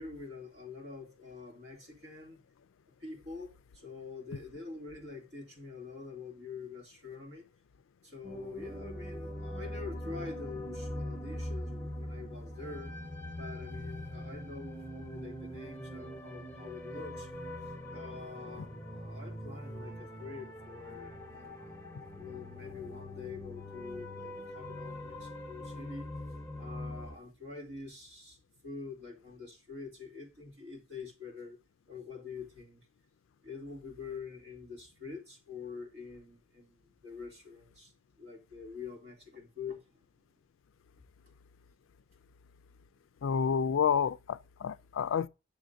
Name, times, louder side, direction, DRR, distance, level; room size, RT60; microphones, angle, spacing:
voice 1, 0.0-2.4 3.0-7.5 8.0-12.9 13.3-17.3 17.6-21.8 22.1-26.1 26.6-31.6 31.9-32.9 33.4-37.9 38.2-40.0, left 4 dB, 55° right, 2.7 m, -46 dB
sound 1, 8.2-27.2, left 1 dB, 10° left, 1.1 m, -42 dB
voice 2, 43.2-45.3, left 7 dB, 85° left, 0.4 m, -29 dB
11.5 x 6.8 x 2.6 m
head